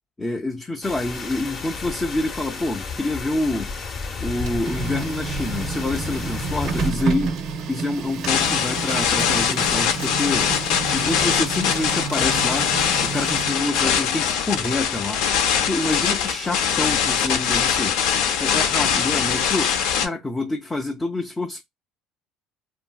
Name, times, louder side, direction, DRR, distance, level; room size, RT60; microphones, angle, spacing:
voice 1, 0.2-3.7 4.2-7.4 7.7-10.5 10.9-12.7 13.0-15.2 15.6-18.0 18.4-21.6, left 2 dB, 15° left, 0.4 m, -27 dB
sound 1, 0.8-6.9, left 4 dB, 40° left, 0.8 m, -32 dB
Printer, 4.2-13.9, right 5 dB, 55° right, 0.5 m, -30 dB
sound 2, 8.3-20.1, left 8 dB, 80° left, 0.5 m, -22 dB
2.9 x 2.5 x 2.3 m
cardioid pair, 120°, 0 cm